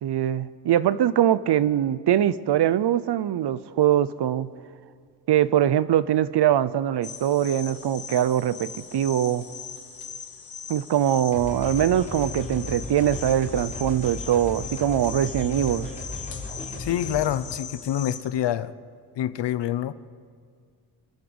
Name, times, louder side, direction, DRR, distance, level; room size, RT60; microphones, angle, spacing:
voice 1, 0.0-4.5 5.3-9.5 10.7-15.9, right 11 dB, 75° right, 0.8 m, -22 dB
sound 1, 7.0-18.2, left 6 dB, 55° left, 2.2 m, -40 dB
sound 2, 11.3-17.3, left 2 dB, 15° left, 5.0 m, -36 dB
voice 2, 16.8-18.7 19.2-19.9, left 11 dB, 90° left, 0.8 m, -26 dB
28.0 x 12.0 x 7.9 m
wide cardioid pair, 125°, 41 cm